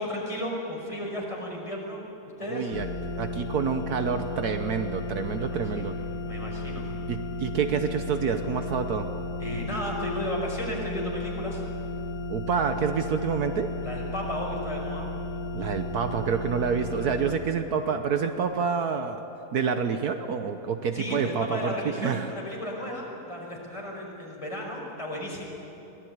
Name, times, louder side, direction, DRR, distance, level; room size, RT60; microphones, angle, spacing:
voice 1, 0.0-2.7 5.3-5.9 6.2-6.8 9.4-11.6 13.8-15.1 17.3-17.4 20.9-25.4, left 1 dB, 20° left, -2 dB, 5.6 m, -34 dB
voice 2, 2.4-2.9 3.2-5.9 7.1-9.1 12.3-13.7 15.5-19.2 19.5-21.7 22.0-22.3, right 6 dB, 70° right, 7 dB, 1.4 m, -28 dB
sound 1, 2.7-17.3, left 2 dB, 60° left, 2.4 m, -34 dB
23.5 x 18.0 x 9.5 m, 3.0 s
omnidirectional pair, 1.7 m